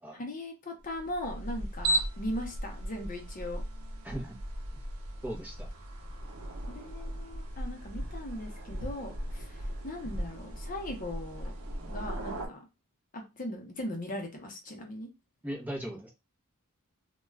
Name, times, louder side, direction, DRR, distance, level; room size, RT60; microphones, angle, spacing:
voice 1, 0.1-3.6 6.6-11.5 11.9-12.6 13.1-15.1, left 1 dB, 40° left, 2 dB, 0.7 m, -39 dB
sound 1, 0.9-12.5, right 1 dB, 85° right, 0.6 m, -37 dB
voice 2, 4.0-4.4 5.2-5.7 15.4-16.1, right 1 dB, 10° right, -1 dB, 0.7 m, -38 dB
2.3 x 2.3 x 3.2 m, 0.25 s
head